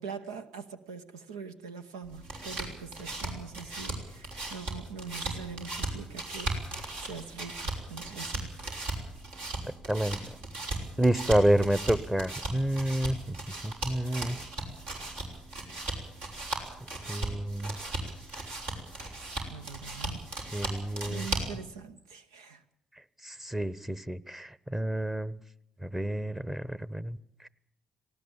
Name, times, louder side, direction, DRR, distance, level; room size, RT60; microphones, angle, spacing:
voice 1, 0.0-8.5 19.5-20.3 21.0-22.6, right 5 dB, 85° right, 0.9 m, -43 dB
sound 1, 2.0-21.6, right 2 dB, 65° right, 5.8 m, -37 dB
voice 2, 9.9-10.2 11.0-13.4 13.6-14.4 17.1-17.8 20.5-21.3 23.2-25.4 25.8-27.2, right 1 dB, 10° right, 1.1 m, -29 dB
19.0 x 17.5 x 8.9 m
hypercardioid pair, 50°, 3 cm